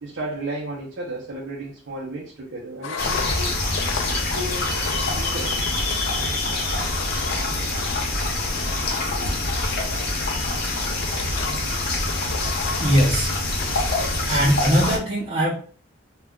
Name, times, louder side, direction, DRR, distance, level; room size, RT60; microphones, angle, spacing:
voice 1, 0.0-3.6 4.1-5.6, right 1 dB, 90° right, -3 dB, 0.6 m, -34 dB
Engine, 2.8-14.2, left 5 dB, 80° left, 0.3 m, -35 dB
sound 1, 3.0-15.0, left 2 dB, 50° left, 0.7 m, -25 dB
voice 2, 12.8-13.3 14.3-15.5, equal, 35° right, -9 dB, 0.8 m, -20 dB
2.4 x 2.1 x 3.6 m, 0.43 s
head